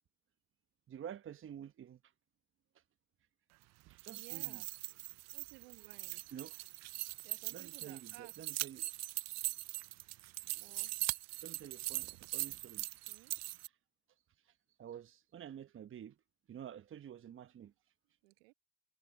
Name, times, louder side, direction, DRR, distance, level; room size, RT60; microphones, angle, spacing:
voice 1, 0.9-2.1 2.7-2.8 3.9-4.6 6.1-6.5 7.0-7.2 7.5-8.9 11.4-13.1 14.4-16.2 16.5-17.7, right 9 dB, 45° right, 1.0 m, -50 dB
sound 1, 3.9-13.7, right 20 dB, 65° right, 0.7 m, -41 dB
voice 2, 4.1-4.7 5.3-6.2 7.2-8.4 10.4-11.0 13.1-13.4 18.2-18.5, right 25 dB, 80° right, 1.8 m, -58 dB
hypercardioid pair, 50°, 29 cm